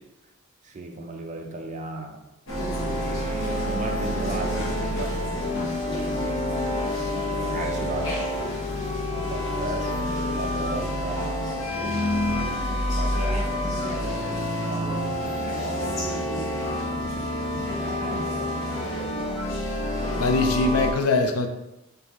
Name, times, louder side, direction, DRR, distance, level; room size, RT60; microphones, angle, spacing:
voice 1, 0.6-2.2 2.6-6.4 6.8-8.2 9.1-12.4 12.6-16.6 17.5-19.2, right 2 dB, 35° right, 2 dB, 0.5 m, -37 dB
sound 1, 2.5-20.9, left 1 dB, 60° left, 1.0 m, -28 dB
voice 2, 20.2-21.5, left 3 dB, 85° left, 6 dB, 0.5 m, -22 dB
4.0 x 3.6 x 2.9 m, 0.93 s
head